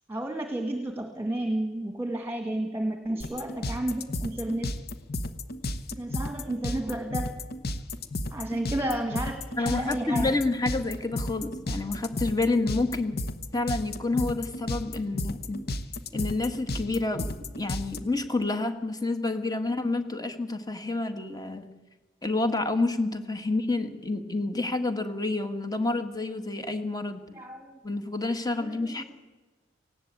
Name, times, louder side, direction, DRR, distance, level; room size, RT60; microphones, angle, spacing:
voice 1, 0.1-4.7 5.9-7.3 8.3-10.3 27.3-27.7 28.6-29.0, right 1 dB, 15° right, 5 dB, 1.8 m, -32 dB
sound 1, 3.2-18.0, left 1 dB, 55° left, 1.2 m, -32 dB
voice 2, 9.6-13.2 13.5-15.6 16.1-17.3 17.6-21.6 22.2-27.2 27.8-29.0, left 2 dB, 20° left, 9 dB, 1.7 m, -29 dB
18.5 x 16.5 x 8.6 m, 1.2 s
head